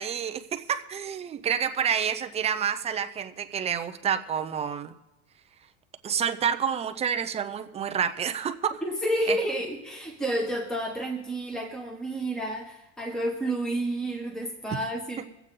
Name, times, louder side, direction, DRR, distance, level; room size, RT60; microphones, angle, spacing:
voice 1, 0.0-4.9 6.0-8.8 9.3-9.4, right 8 dB, 20° right, 8 dB, 0.6 m, -28 dB
voice 2, 8.8-15.2, right 1 dB, ahead, 2 dB, 1.3 m, -30 dB
23.5 x 8.1 x 3.7 m, 0.93 s
cardioid pair, 155°, 33 cm